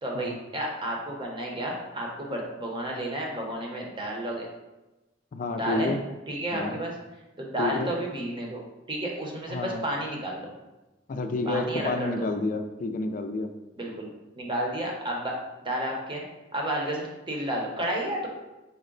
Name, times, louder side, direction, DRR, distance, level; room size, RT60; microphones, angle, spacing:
voice 1, 0.0-4.5 5.6-5.9 6.3-6.9 7.4-8.6 8.9-10.5 11.4-12.3 13.8-14.1 14.3-15.3 15.6-16.2 16.5-18.3, right 1 dB, 25° right, -1 dB, 0.8 m, -31 dB
voice 2, 5.3-6.0 6.5-6.8 7.6-7.9 9.5-9.8 11.1-13.5, left 2 dB, 45° left, 6 dB, 0.4 m, -29 dB
5.6 x 2.1 x 3.8 m, 1.0 s
head